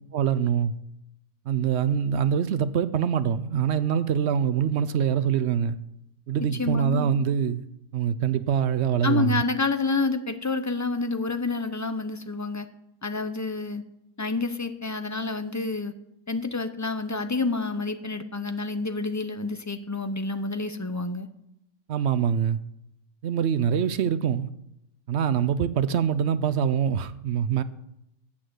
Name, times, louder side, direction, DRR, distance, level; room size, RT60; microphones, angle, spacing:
voice 1, 0.1-0.7 1.5-5.8 6.3-7.6 7.9-9.4 21.9-22.6 23.2-24.5 25.1-27.6, right 8 dB, 70° right, 0.8 m, -24 dB
voice 2, 6.5-7.1 9.0-12.7 13.0-13.8 14.2-15.9 16.3-21.3, left 3 dB, 20° left, 0.5 m, -28 dB
8.8 x 7.2 x 7.8 m
omnidirectional pair, 1.3 m